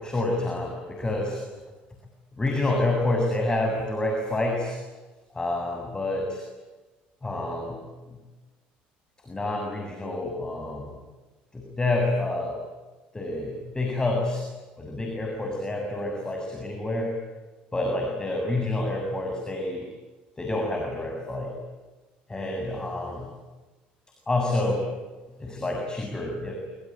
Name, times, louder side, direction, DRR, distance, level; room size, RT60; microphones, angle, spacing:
voice 1, 0.0-1.4 2.4-4.8 5.3-6.4 7.2-7.8 9.2-11.0 11.5-12.6 13.1-14.5 14.8-17.1 17.7-19.9 20.4-21.6 22.3-23.3 24.3-24.9 25.4-26.6, left 2 dB, 20° left, 2 dB, 7.5 m, -28 dB
26.5 x 24.0 x 9.0 m, 1.2 s
supercardioid pair, 80°, 4 cm